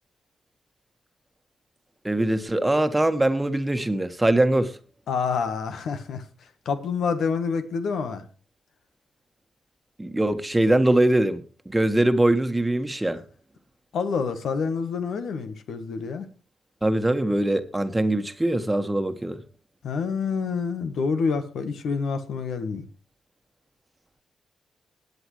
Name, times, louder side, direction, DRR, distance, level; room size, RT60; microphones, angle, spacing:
voice 1, 2.0-4.7 10.0-13.2 16.8-19.4, right 1 dB, 15° right, 1.5 m, -22 dB
voice 2, 5.1-6.2 6.6-8.2 13.9-16.3 19.8-22.8, left 5 dB, 70° left, 1.3 m, -27 dB
19.0 x 8.1 x 3.2 m
hypercardioid pair, 45°, 0 cm